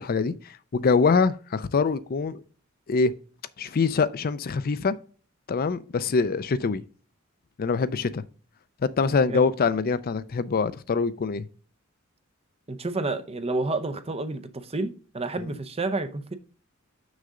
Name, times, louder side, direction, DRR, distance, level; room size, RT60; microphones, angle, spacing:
voice 1, 0.0-2.4 2.9-3.1 3.6-4.9 5.5-6.8 7.6-8.2 8.8-11.4 15.4-15.5, left 4 dB, 45° left, 0.4 m, -24 dB
voice 2, 12.7-16.4, right 2 dB, 30° right, 0.7 m, -30 dB
6.8 x 6.3 x 3.7 m
head